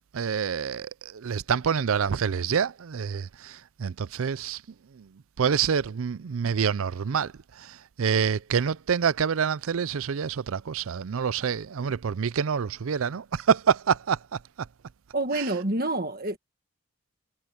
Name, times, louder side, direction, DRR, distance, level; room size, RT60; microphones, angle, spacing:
voice 1, 0.1-4.6 5.0-5.1 5.4-7.3 7.6-14.2, right 7 dB, 70° right, 0.5 m, -27 dB
voice 2, 15.1-16.4, right 2 dB, 40° right, 1.6 m, -27 dB
head